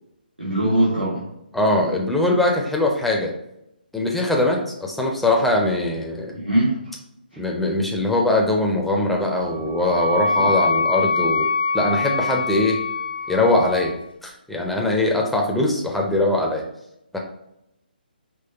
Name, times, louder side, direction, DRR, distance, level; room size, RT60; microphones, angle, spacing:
voice 1, 0.4-1.2 6.3-6.8 10.3-10.5, right 1 dB, 85° right, -8 dB, 1.5 m, -21 dB
voice 2, 1.5-3.3 3.9-6.4 7.4-11.5 11.7-12.8 13.3-13.9 14.2-16.6 17.1-17.2, left 2 dB, ahead, 0 dB, 0.5 m, -21 dB
Wind instrument woodwind instrument, 9.2-14.0, left 3 dB, 80° left, 0.8 m, -24 dB
5.2 x 3.1 x 2.9 m, 0.84 s
figure-of-eight pair, 140°, 5 cm